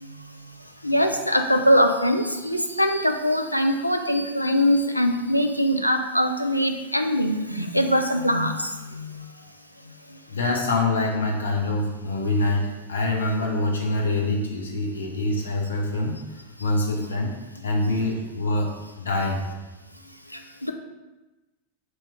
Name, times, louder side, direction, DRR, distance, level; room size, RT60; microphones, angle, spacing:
voice 1, 0.8-9.1 20.6-20.7, equal, 90° left, 5 dB, 0.3 m, -22 dB
voice 2, 10.3-17.4 17.6-19.4, left 2 dB, 70° left, -1 dB, 0.8 m, -25 dB
3.1 x 2.9 x 4.5 m, 1.1 s
figure-of-eight pair, 90°, 0 cm